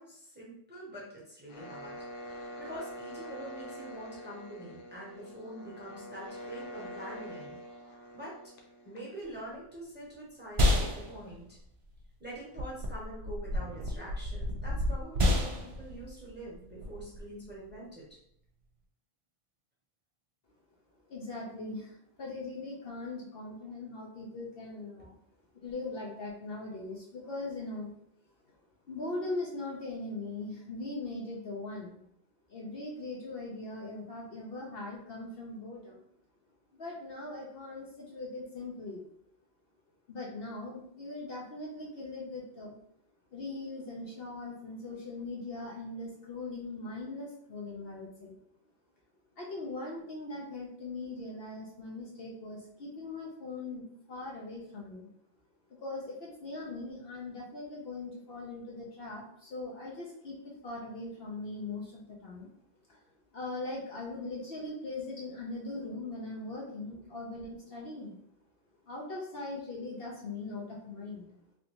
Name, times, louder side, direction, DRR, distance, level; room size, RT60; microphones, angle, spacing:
voice 1, 0.0-7.6 8.1-8.4 8.8-11.6 12.2-18.1 25.0-25.1, right 1 dB, 10° right, -5 dB, 0.9 m, -45 dB
sound 1, 1.5-9.3, equal, 85° left, 1.0 m, -45 dB
RG Wall Punch, 9.2-18.8, left 1 dB, 40° right, 0.5 m, -33 dB
sound 2, 11.5-11.6 11.9-12.0 12.6-17.7, left 1 dB, 70° right, 0.9 m, -36 dB
voice 2, 21.1-25.2 25.5-27.9 28.9-32.0 32.5-36.0 36.7-39.0 40.1-42.8 43.3-48.4 49.4-55.1 55.8-62.5 62.9-63.0 63.3-68.2 68.8-71.4, left 2 dB, 60° left, -3 dB, 0.8 m, -40 dB
3.4 x 2.5 x 2.9 m, 0.70 s
omnidirectional pair, 1.2 m